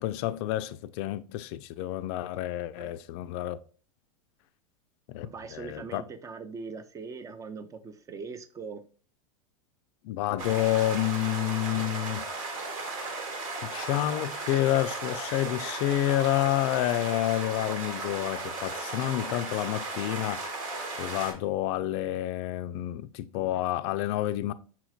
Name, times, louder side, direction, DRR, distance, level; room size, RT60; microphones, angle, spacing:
voice 1, 0.0-3.6 5.1-6.0 10.0-12.3 13.6-20.6 21.0-24.5, left 14 dB, 50° left, 0.4 m, -29 dB
voice 2, 5.2-8.8, right 5 dB, 15° right, 0.5 m, -41 dB
sound 1, 10.4-21.3, right 3 dB, 65° right, 1.4 m, -36 dB
5.8 x 3.0 x 2.3 m
hypercardioid pair, 120°, 18 cm